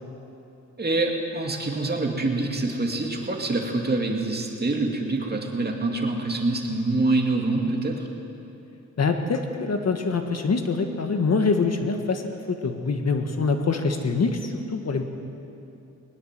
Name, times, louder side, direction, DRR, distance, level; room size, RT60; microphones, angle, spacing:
voice 1, 0.8-7.9, right 2 dB, 30° right, 1 dB, 2.5 m, -25 dB
voice 2, 9.0-15.0, left 4 dB, 55° left, 5 dB, 1.6 m, -25 dB
21.0 x 20.0 x 7.6 m, 2.8 s
wide cardioid pair, 140°, 31 cm